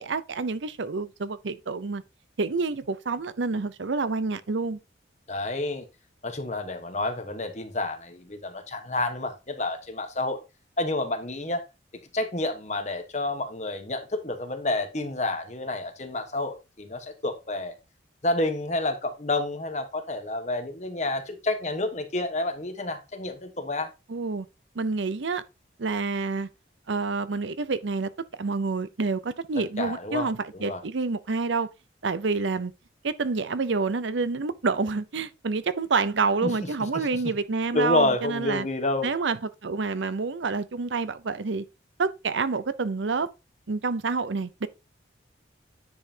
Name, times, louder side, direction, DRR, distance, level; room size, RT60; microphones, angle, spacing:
voice 1, 0.0-2.0 2.4-4.8 24.1-24.5 24.8-25.4 25.8-26.5 26.9-28.1 28.4-31.7 32.0-32.7 33.0-38.7 39.0-41.7 42.0-43.3 43.7-44.7, right 4 dB, 75° right, 0.6 m, -28 dB
voice 2, 5.3-5.9 6.2-10.4 10.8-11.6 12.1-17.7 18.2-23.9 29.8-30.3 30.5-30.8 36.4-37.0 37.7-39.1, left 2 dB, 35° left, 1.2 m, -29 dB
9.8 x 5.5 x 2.8 m
head